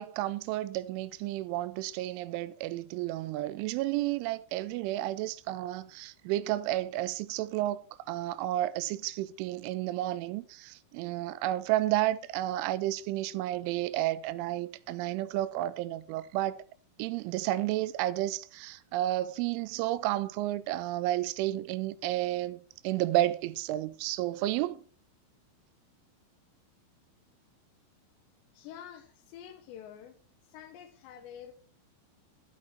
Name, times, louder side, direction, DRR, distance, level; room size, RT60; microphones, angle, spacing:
voice 1, 0.0-16.6 17.0-24.8, right 15 dB, 90° right, 3.1 m, -31 dB
voice 2, 28.6-30.2 30.5-31.5, left 9 dB, 75° left, 2.9 m, -47 dB
12.0 x 6.2 x 4.2 m
omnidirectional pair, 5.4 m